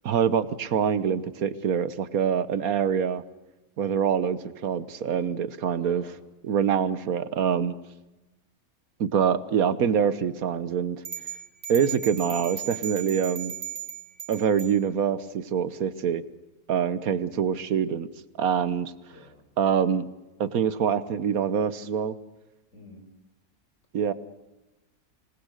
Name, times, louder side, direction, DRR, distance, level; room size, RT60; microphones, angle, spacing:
voice 1, 0.0-3.2 3.8-6.0 6.4-7.7 9.0-11.0 11.7-13.5 14.3-16.2 16.7-18.1 18.4-18.9 19.6-20.1 20.4-22.2 23.9-24.1, right 7 dB, 80° right, 14 dB, 1.5 m, -25 dB
voice 2, 5.8-6.2 17.0-17.4 19.1-19.4 22.7-23.0, left 2 dB, 60° left, 4 dB, 5.0 m, -48 dB
sound 1, 11.0-14.7, right 9 dB, 60° right, 3.2 m, -36 dB
26.5 x 19.5 x 6.5 m, 1.0 s
omnidirectional pair, 1.5 m